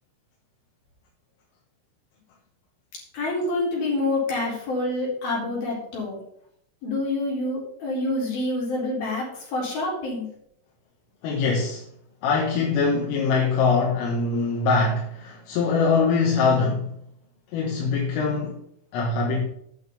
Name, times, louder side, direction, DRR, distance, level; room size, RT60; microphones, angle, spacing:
voice 1, 3.1-6.2 6.8-10.3, left 2 dB, 50° left, 5.7 m, -27 dB
voice 2, 11.2-11.8 12.2-16.9 17.5-18.6 18.9-19.4, left 4 dB, 80° left, 4.0 m, -23 dB
9.3 x 6.3 x 7.0 m
omnidirectional pair, 5.8 m